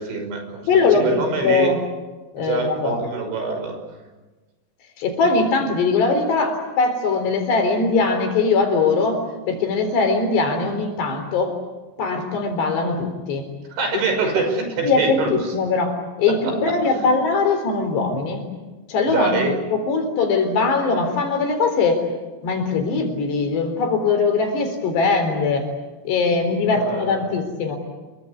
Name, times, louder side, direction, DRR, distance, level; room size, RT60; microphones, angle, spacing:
voice 1, 0.0-1.7 2.4-3.8 13.7-15.5 16.3-16.7 19.1-19.5 26.6-27.2, right 3 dB, 70° right, 5 dB, 7.9 m, -25 dB
voice 2, 0.7-1.8 2.3-3.0 5.0-9.2 9.5-11.5 12.0-13.5 14.8-15.9 16.2-18.5 18.9-19.4 19.7-22.0 22.4-25.7 26.1-27.8, left 4 dB, 60° left, 6 dB, 5.9 m, -21 dB
27.5 x 23.0 x 8.4 m, 1.2 s
omnidirectional pair, 5.4 m